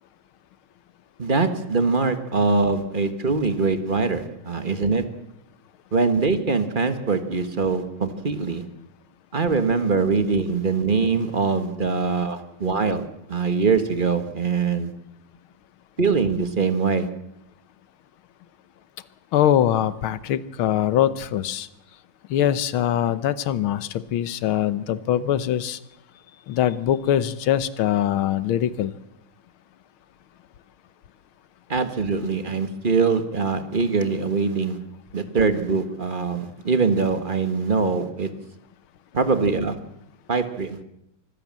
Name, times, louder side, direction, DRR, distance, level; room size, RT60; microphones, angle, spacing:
voice 1, 1.2-5.1 5.9-8.7 9.3-14.9 16.0-17.2 31.7-34.8 35.1-38.3 39.1-39.8 40.3-40.8, right 4 dB, 30° right, 9 dB, 1.4 m, -23 dB
voice 2, 19.3-21.7 22.3-25.8 26.5-29.0, left 11 dB, 90° left, 16 dB, 1.8 m, -22 dB
24.5 x 15.0 x 7.6 m, 0.83 s
omnidirectional pair, 2.2 m